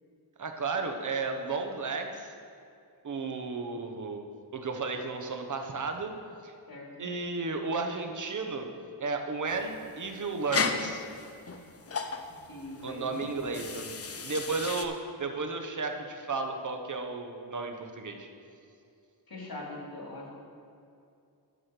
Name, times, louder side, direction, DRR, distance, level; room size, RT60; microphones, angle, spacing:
voice 1, 0.4-2.4 3.0-4.2 4.5-6.1 6.4-6.5 7.0-8.7 9.0-11.1 12.8-14.0 14.2-18.3, right 4 dB, 45° right, 4 dB, 1.0 m, -33 dB
voice 2, 6.7-7.1 12.4-13.7 14.0-14.1 19.3-20.3, left 2 dB, 60° left, -3 dB, 2.9 m, -42 dB
sound 1, 9.5-14.8, left 5 dB, 35° left, 0.6 m, -35 dB
11.0 x 6.3 x 5.9 m, 2.5 s
wide cardioid pair, 125°, 41 cm